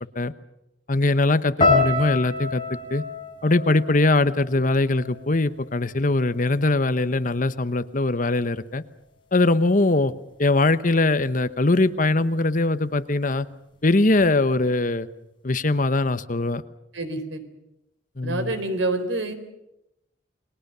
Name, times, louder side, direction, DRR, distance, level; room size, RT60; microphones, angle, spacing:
voice 1, 0.9-2.6 2.9-3.0 3.4-8.8 9.3-10.1 10.4-13.5 13.8-15.1 15.4-16.6 18.2-18.5, left 2 dB, 45° left, 13 dB, 1.0 m, -21 dB
sound 1, 1.6-5.8 6.1-6.9 7.4-7.7, left 3 dB, 25° left, 6.1 m, -27 dB
voice 2, 16.9-17.4 18.2-19.3, right 2 dB, 80° right, 8 dB, 4.1 m, -27 dB
30.0 x 21.5 x 6.8 m, 0.86 s
head